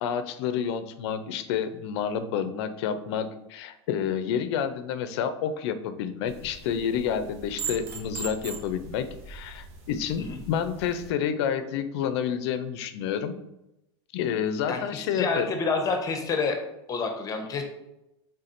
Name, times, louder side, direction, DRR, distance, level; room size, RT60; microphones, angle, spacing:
voice 1, 0.0-13.3 14.1-15.6, left 8 dB, 65° left, 11 dB, 0.4 m, -29 dB
sound 1, 6.3-11.1, right 5 dB, 60° right, 0.8 m, -40 dB
voice 2, 15.1-16.6 16.9-17.6, left 4 dB, 25° left, 4 dB, 0.7 m, -28 dB
4.2 x 3.6 x 2.5 m, 0.90 s
supercardioid pair, 130°, 15 cm